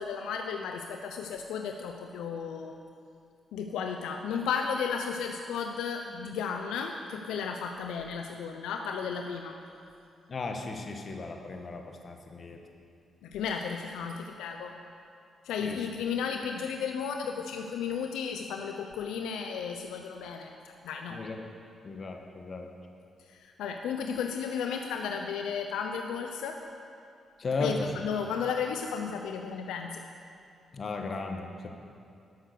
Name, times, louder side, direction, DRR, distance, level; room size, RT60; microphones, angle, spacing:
voice 1, 0.0-2.7 3.5-9.6 13.2-14.7 15.4-21.2 23.3-26.6 27.6-30.0, left 6 dB, 90° left, 4 dB, 0.5 m, -34 dB
voice 2, 10.3-12.6 15.6-15.8 21.1-21.5 21.8-22.7 27.4-27.9 30.7-31.7, left 3 dB, 50° left, 3 dB, 1.3 m, -35 dB
12.5 x 6.5 x 6.7 m, 2.5 s
cardioid pair, 65°, 0 cm